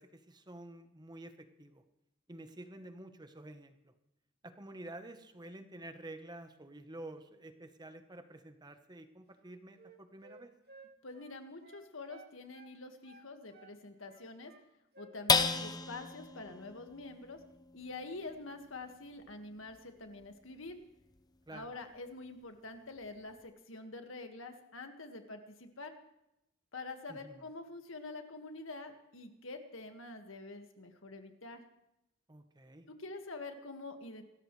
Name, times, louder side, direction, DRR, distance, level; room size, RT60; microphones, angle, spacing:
voice 1, 0.0-1.8 2.3-3.9 4.4-10.5 21.5-21.7 27.1-27.5 32.3-32.9, right 1 dB, 20° right, 8 dB, 1.1 m, -50 dB
Wind instrument woodwind instrument, 9.3-12.8 13.0-14.7 14.9-15.2 15.5-16.1 16.4-16.6, right 3 dB, 55° right, 2.3 m, -58 dB
voice 2, 11.0-14.5 15.0-17.4 17.7-20.8 21.5-25.9 26.7-31.6 32.9-34.2, left 3 dB, 75° left, 6 dB, 1.9 m, -46 dB
sound 1, 15.3-22.0 22.5-22.6 23.0-23.5, left 4 dB, 20° left, 0.8 m, -37 dB
26.5 x 13.5 x 3.3 m, 0.85 s
head